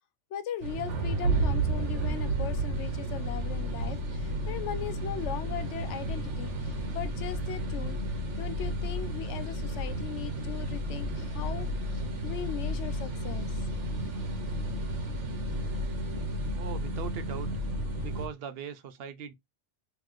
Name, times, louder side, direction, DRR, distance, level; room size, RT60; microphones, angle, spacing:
voice 1, 0.3-8.0 8.4-13.6 15.5-15.6, left 10 dB, 80° left, 0.9 m, -39 dB
sound 1, 0.6-18.3, right 1 dB, 85° right, 1.2 m, -32 dB
voice 2, 16.6-17.6 18.0-19.3, right 7 dB, 65° right, 0.7 m, -40 dB
3.8 x 3.2 x 3.0 m
omnidirectional pair, 1.2 m